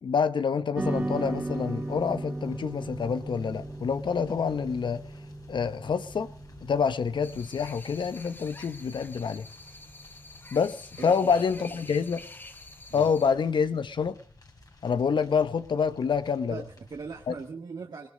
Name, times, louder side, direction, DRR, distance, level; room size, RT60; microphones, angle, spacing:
voice 1, 0.0-5.0 5.5-6.3 6.6-9.5 10.5-12.2 12.9-14.2 14.8-16.6 17.3-17.4, left 6 dB, 70° left, 1.0 m, -27 dB
sound 1, 0.7-9.3, right 2 dB, 20° right, 1.1 m, -37 dB
sound 2, 0.8-17.5, left 2 dB, 45° left, 3.6 m, -53 dB
sound 3, 7.2-13.3, left 2 dB, 25° left, 1.3 m, -48 dB
voice 2, 11.0-11.8 12.9-13.1 16.5-18.1, right 5 dB, 60° right, 1.8 m, -40 dB
20.5 x 18.0 x 3.8 m
cardioid pair, 65°, 8 cm